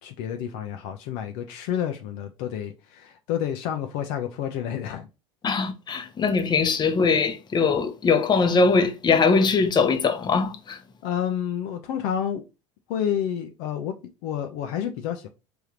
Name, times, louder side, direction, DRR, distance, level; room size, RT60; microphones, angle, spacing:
voice 1, 0.0-5.1 11.0-12.4 12.9-13.9 14.2-15.3, left 9 dB, 60° left, 0.7 m, -29 dB
voice 2, 5.4-10.8, left 4 dB, 25° left, 0.9 m, -21 dB
3.5 x 3.5 x 3.0 m
hypercardioid pair, 75°, 16 cm